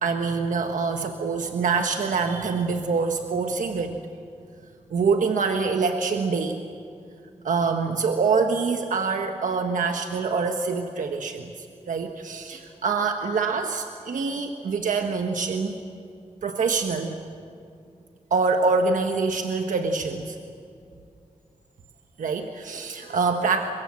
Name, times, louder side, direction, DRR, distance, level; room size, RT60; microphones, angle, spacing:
voice 1, 0.0-4.0 4.9-6.6 7.4-11.5 11.9-15.7 16.4-17.2 18.3-20.4 22.2-23.7, right 4 dB, 90° right, 4 dB, 1.3 m, -25 dB
29.5 x 24.0 x 7.5 m, 2.4 s
wide cardioid pair, 135°, 13 cm